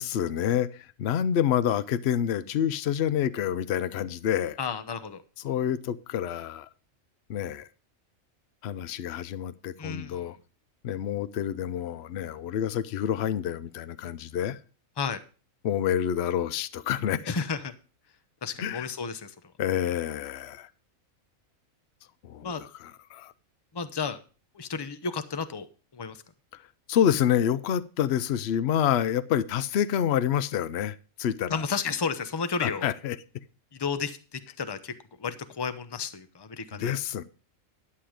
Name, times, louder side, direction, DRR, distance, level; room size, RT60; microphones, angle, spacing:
voice 1, 0.0-4.6 5.4-6.7 7.3-7.7 8.6-10.4 10.8-14.6 15.6-17.3 18.6-18.9 19.6-20.7 22.2-23.3 26.9-31.6 32.6-33.2 36.7-37.2, left 9 dB, 60° left, 0.8 m, -28 dB
voice 2, 4.6-5.2 9.8-10.3 15.0-15.2 17.3-17.7 18.4-19.3 22.4-22.6 23.7-24.2 24.5-25.7 25.9-26.2 31.5-32.9 33.7-34.9 35.2-37.0, left 5 dB, 25° left, 0.7 m, -32 dB
11.5 x 7.6 x 5.0 m
omnidirectional pair, 1.4 m